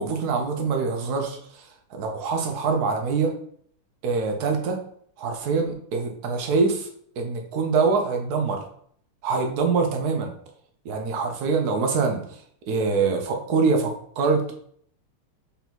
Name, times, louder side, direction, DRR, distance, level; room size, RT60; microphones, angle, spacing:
voice 1, 0.0-1.4 1.9-3.3 4.0-4.8 5.2-6.9 7.2-8.6 9.2-10.3 10.8-12.2 12.7-14.5, right 4 dB, 55° right, 3 dB, 1.3 m, -24 dB
5.3 x 3.9 x 4.6 m, 0.62 s
omnidirectional pair, 2.4 m